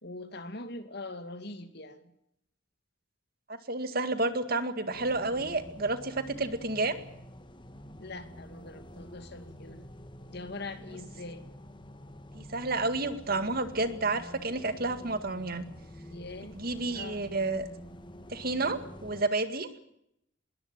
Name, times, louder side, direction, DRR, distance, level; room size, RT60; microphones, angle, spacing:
voice 1, 0.0-2.0 8.0-9.9 10.3-11.4 16.1-16.6 16.9-17.2, left 2 dB, 55° left, 9 dB, 2.5 m, -42 dB
voice 2, 3.5-7.0 12.3-15.6 16.5-17.7 18.3-19.7, right 2 dB, 50° right, 10 dB, 2.0 m, -30 dB
sound 1, 4.9-19.2, equal, 25° left, 1.6 m, -48 dB
21.0 x 19.0 x 8.9 m, 0.77 s
head